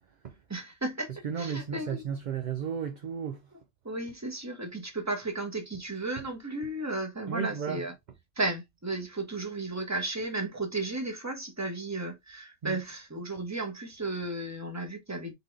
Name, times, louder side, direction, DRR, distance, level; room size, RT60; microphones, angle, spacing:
voice 1, 0.5-1.1 1.4-2.0 3.8-7.9 8.4-15.3, right 2 dB, 15° right, 1.1 m, -34 dB
voice 2, 1.2-3.4 7.3-7.9 12.6-12.8, right 7 dB, 50° right, 0.6 m, -34 dB
4.0 x 3.7 x 3.2 m
omnidirectional pair, 1.3 m